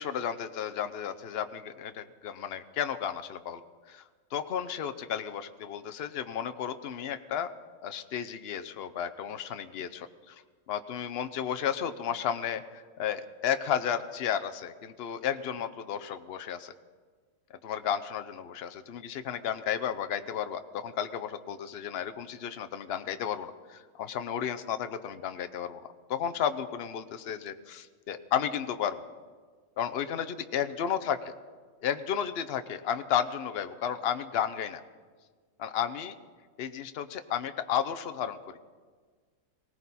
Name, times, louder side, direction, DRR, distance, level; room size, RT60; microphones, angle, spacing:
voice 1, 0.0-3.6 3.9-4.0 4.3-7.5 7.8-10.4 10.7-16.7 17.6-25.8 26.1-29.0 29.8-31.3 31.8-34.8 35.6-36.1 36.6-38.6, left 8 dB, 55° left, 9 dB, 0.7 m, -33 dB
19.0 x 18.0 x 4.2 m, 1.6 s
omnidirectional pair, 1.7 m